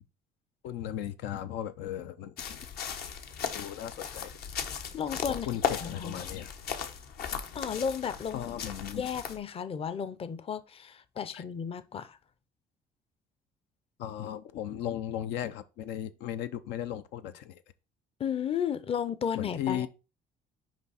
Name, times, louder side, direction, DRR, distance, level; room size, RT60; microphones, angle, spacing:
voice 1, 0.6-2.6 3.5-4.3 5.3-6.5 8.3-9.0 11.3-11.4 14.0-17.6 19.3-19.9, left 11 dB, 90° left, 0.6 m, -36 dB
sound 1, 2.4-9.4, left 7 dB, 70° left, 1.0 m, -37 dB
voice 2, 4.9-6.3 7.5-8.4 9.0-12.2 18.2-19.9, left 7 dB, 35° left, 0.6 m, -34 dB
6.0 x 4.7 x 4.1 m
cardioid pair, 110°, 17 cm